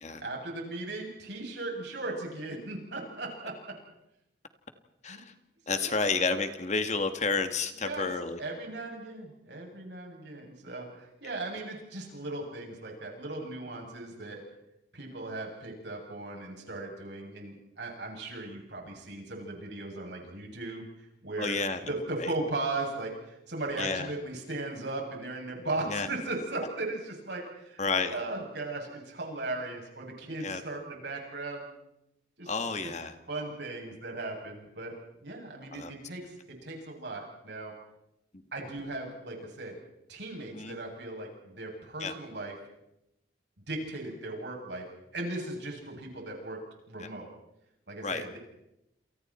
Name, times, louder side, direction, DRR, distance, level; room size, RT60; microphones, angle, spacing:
voice 1, 0.2-3.7 5.0-5.2 5.7-6.0 7.7-8.1 8.4-14.4 14.9-20.9 21.2-21.6 21.8-31.6 32.4-32.5 32.8-32.9 33.3-34.9 35.2-37.7 38.5-39.7 40.1-42.6 43.7-44.8 45.1-46.6 46.9-47.3 47.9-48.4, right 2 dB, 70° right, 0 dB, 7.9 m, -37 dB
voice 2, 5.7-8.4 21.4-21.8 22.2-22.3 23.8-24.1 25.9-26.1 27.8-28.1 30.4-30.6 32.5-33.1 35.7-35.9 40.5-40.8 42.0-42.1 47.0-47.1 48.0-48.4, left 4 dB, 40° left, 8 dB, 1.9 m, -30 dB
29.0 x 28.5 x 4.5 m, 0.86 s
head